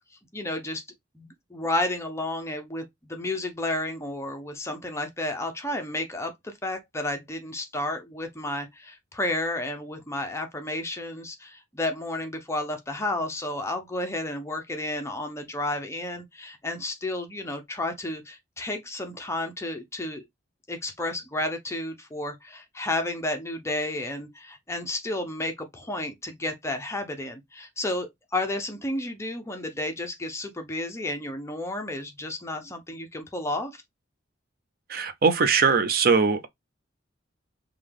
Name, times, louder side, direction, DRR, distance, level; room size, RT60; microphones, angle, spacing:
voice 1, 0.3-0.8 1.1-20.2 20.7-33.8, left 1 dB, 15° left, 0.6 m, -32 dB
voice 2, 34.9-36.5, right 5 dB, 45° right, 0.6 m, -21 dB
5.4 x 2.3 x 3.4 m
head